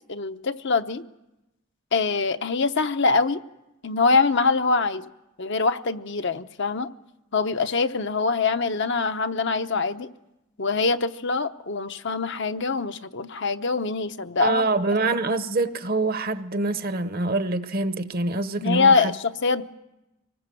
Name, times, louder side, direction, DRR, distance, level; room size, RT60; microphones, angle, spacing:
voice 1, 0.1-1.0 1.9-3.4 3.8-5.0 5.4-6.9 7.3-10.1 10.6-14.6 18.6-19.6, left 4 dB, 55° left, 0.8 m, -24 dB
voice 2, 14.4-19.1, right 2 dB, 40° right, 1.0 m, -25 dB
25.0 x 20.0 x 7.7 m
head